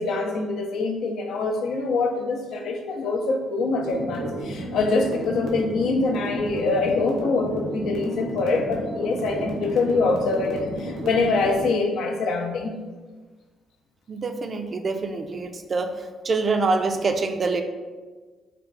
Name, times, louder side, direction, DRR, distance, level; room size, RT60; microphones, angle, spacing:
voice 1, 0.0-12.8, left 3 dB, 75° left, 3 dB, 0.5 m, -24 dB
sound 1, 3.8-11.6, right 1 dB, 85° right, 0.7 m, -32 dB
voice 2, 14.1-15.9 16.2-17.6, right 3 dB, 40° right, 6 dB, 0.3 m, -25 dB
3.4 x 2.3 x 3.8 m, 1.4 s
cardioid pair, 90°, 0 cm